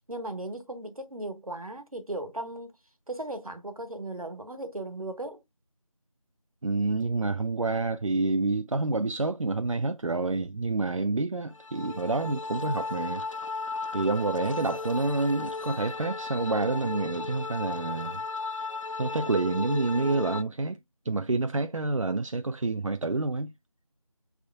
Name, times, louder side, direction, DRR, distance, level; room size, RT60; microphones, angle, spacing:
voice 1, 0.1-2.8 3.1-5.4, right 1 dB, 90° right, 1.3 m, -37 dB
voice 2, 6.6-13.2 13.9-18.2 19.0-20.8 21.1-23.5, right 3 dB, 65° right, 0.4 m, -28 dB
sound 1, 11.5-20.4, left 3 dB, 65° left, 0.5 m, -35 dB
6.3 x 3.5 x 2.3 m
figure-of-eight pair, 175°, 18 cm